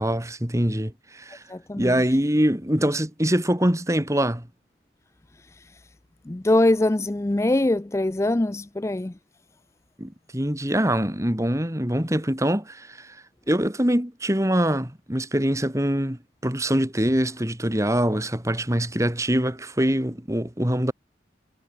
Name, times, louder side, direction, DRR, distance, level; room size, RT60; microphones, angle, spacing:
voice 1, 0.0-1.4 1.8-4.5 10.0-13.2 13.5-20.9, right 1 dB, 15° right, 2.5 m, -24 dB
voice 2, 1.5-1.9 5.5-5.7 6.3-9.1, left 1 dB, 15° left, 0.4 m, -23 dB
head